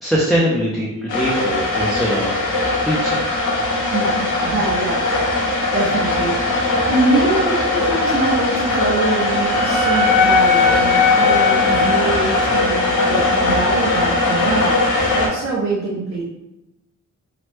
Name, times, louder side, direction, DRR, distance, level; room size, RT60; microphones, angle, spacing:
voice 1, 0.0-3.2, equal, ahead, -5 dB, 0.3 m, -22 dB
sound 1, 1.1-15.3, left 2 dB, 80° left, 0.7 m, -19 dB
voice 2, 3.9-5.5 5.7-14.7 15.1-16.2, right 3 dB, 45° right, -5 dB, 0.6 m, -24 dB
Wind instrument woodwind instrument, 8.6-12.8, left 5 dB, 45° left, 0.6 m, -19 dB
2.9 x 2.0 x 3.1 m, 0.89 s
wide cardioid pair, 145°, 30 cm